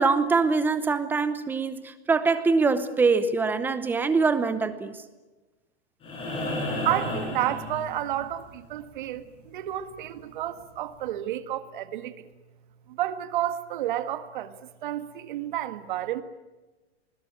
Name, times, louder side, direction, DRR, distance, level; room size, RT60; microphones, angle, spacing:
voice 1, 0.0-4.9, right 4 dB, 5° right, 0.8 m, -23 dB
sound 1, 6.0-8.3 10.2-10.3, left 1 dB, 15° left, 7.4 m, -32 dB
voice 2, 6.8-12.3 12.9-16.2, right 12 dB, 45° right, 1.8 m, -31 dB
28.5 x 21.0 x 8.8 m
supercardioid pair, 170°, 33 cm